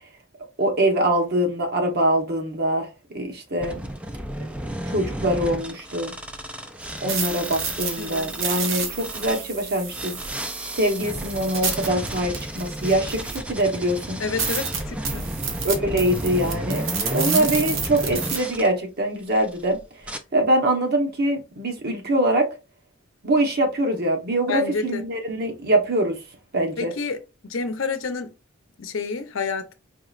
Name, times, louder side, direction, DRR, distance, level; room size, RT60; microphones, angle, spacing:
voice 1, 0.6-2.9 3.1-3.8 4.9-6.1 7.0-10.2 10.7-14.2 15.6-16.8 17.1-19.8 20.3-22.5 23.2-26.2 26.5-26.9, right 1 dB, 55° right, 1.0 m, -23 dB
sound 1, 3.6-9.4 9.9-18.7 19.3-19.6 20.0-20.2, right 1 dB, 5° right, 0.4 m, -33 dB
sound 2, 6.8-13.6 14.0-14.1 14.4-18.4, right 6 dB, 75° right, 1.0 m, -30 dB
voice 2, 8.0-8.3 14.2-15.3 24.5-25.0 26.8-28.3 28.8-29.7, left 4 dB, 75° left, 0.7 m, -29 dB
4.7 x 3.0 x 2.4 m
head